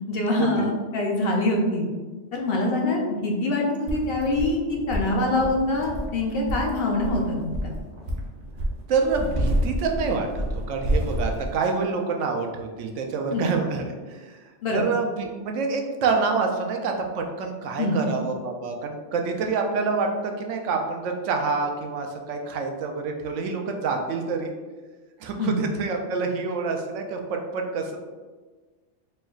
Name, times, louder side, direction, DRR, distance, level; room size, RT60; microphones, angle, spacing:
voice 1, 0.1-1.9 2.3-7.7 13.3-13.5 14.6-14.8 17.8-18.0 25.4-25.6, left 2 dB, 60° left, 0 dB, 0.8 m, -24 dB
sound 1, 3.9-11.5, equal, 50° right, 0.8 m, -29 dB
voice 2, 8.9-14.4 14.7-24.5 25.2-28.0, right 4 dB, 90° right, 3 dB, 0.9 m, -27 dB
4.3 x 3.2 x 2.3 m, 1.3 s
omnidirectional pair, 1.2 m